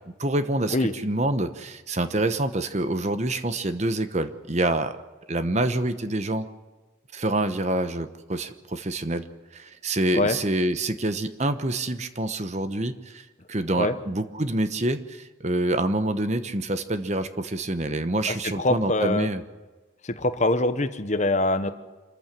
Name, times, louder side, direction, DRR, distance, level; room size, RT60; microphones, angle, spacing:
voice 1, 0.2-5.0 5.3-6.5 7.1-9.2 9.5-19.4, right 1 dB, 35° right, 10 dB, 1.0 m, -26 dB
voice 2, 18.6-19.3 20.0-21.7, left 2 dB, 35° left, 11 dB, 1.0 m, -23 dB
26.5 x 14.5 x 7.6 m, 1.3 s
head